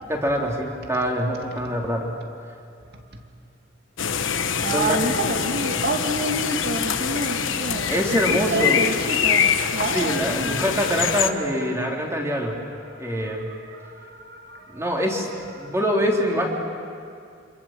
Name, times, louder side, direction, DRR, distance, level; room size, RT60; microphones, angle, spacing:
voice 1, 0.1-2.1 4.7-5.0 7.9-8.8 9.9-12.5 13.0-13.4 14.7-15.3 15.6-16.5, equal, 15° right, -1 dB, 3.5 m, -24 dB
sound 1, 4.0-11.3, left 7 dB, 70° left, 1.2 m, -24 dB
voice 2, 4.6-11.0 13.0-13.4 13.7-14.8 15.6-15.7, right 2 dB, 55° right, 4 dB, 2.5 m, -29 dB
28.0 x 26.0 x 7.6 m, 2.3 s
head